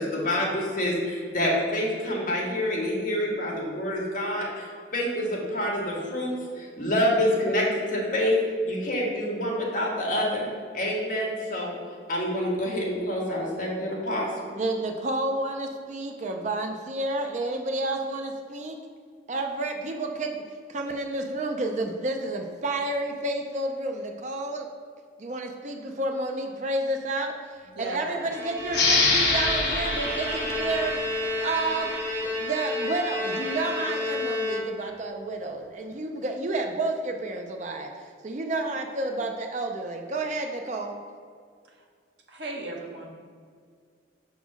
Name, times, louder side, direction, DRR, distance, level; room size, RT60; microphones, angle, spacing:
voice 1, 0.0-8.4 8.6-10.4 10.7-11.7 12.1-14.5, left 1 dB, 50° left, -3 dB, 1.5 m, -27 dB
voice 2, 14.5-18.8 19.3-20.4 20.7-24.7 25.2-27.4 27.8-31.9 32.2-37.9 38.2-40.9, right 2 dB, 40° right, 3 dB, 0.5 m, -30 dB
voice 3, 27.7-28.3 42.3-43.1, right 2 dB, 75° right, 0 dB, 1.1 m, -35 dB
Bowed string instrument, 28.1-35.1, left 1 dB, 10° right, 1.0 m, -31 dB
sound 1, 28.7-32.0, left 3 dB, 65° left, 1.1 m, -26 dB
6.1 x 3.7 x 6.0 m, 2.1 s
head